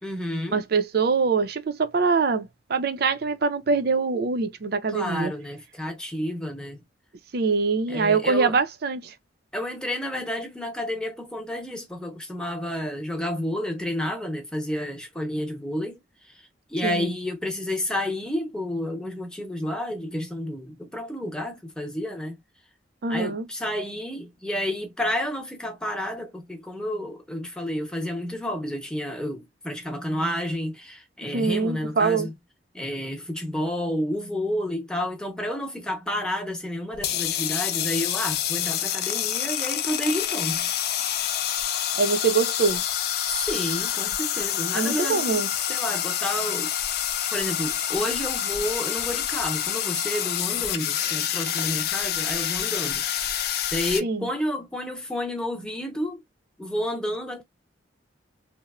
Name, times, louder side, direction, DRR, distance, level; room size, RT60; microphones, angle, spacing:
voice 1, 0.0-0.6 4.9-6.8 7.9-8.6 9.5-22.4 23.1-32.3 32.7-40.7 43.3-47.0 47.3-53.0 53.7-56.2 56.6-57.4, left 1 dB, 5° left, 0.7 m, -30 dB
voice 2, 0.5-5.3 7.3-9.1 16.8-17.1 23.0-23.5 31.2-32.3 42.0-42.8 44.7-45.5 54.0-54.3, right 4 dB, 55° right, 0.4 m, -24 dB
sound 1, 36.9-54.0, left 10 dB, 55° left, 0.3 m, -27 dB
3.0 x 2.0 x 2.3 m
head